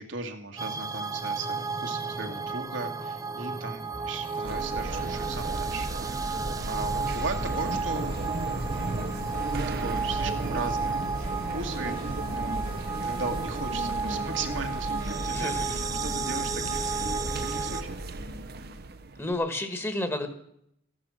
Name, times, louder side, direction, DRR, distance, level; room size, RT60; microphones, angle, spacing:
voice 1, 0.0-5.9 6.2-6.4 6.7-8.2 8.6-8.9 9.8-12.6 13.0-18.0, right 3 dB, 70° right, 4 dB, 1.9 m, -37 dB
sound 1, 0.6-17.8, right 4 dB, 20° right, 0.8 m, -33 dB
sound 2, 3.9-5.8 7.4-17.1, left 1 dB, 75° left, 5.2 m, -47 dB
sound 3, 4.5-19.3, right 2 dB, 50° right, 0.8 m, -34 dB
voice 2, 15.3-15.8 19.2-20.3, left 1 dB, 15° left, 8 dB, 1.6 m, -31 dB
15.0 x 11.5 x 6.3 m, 0.71 s
head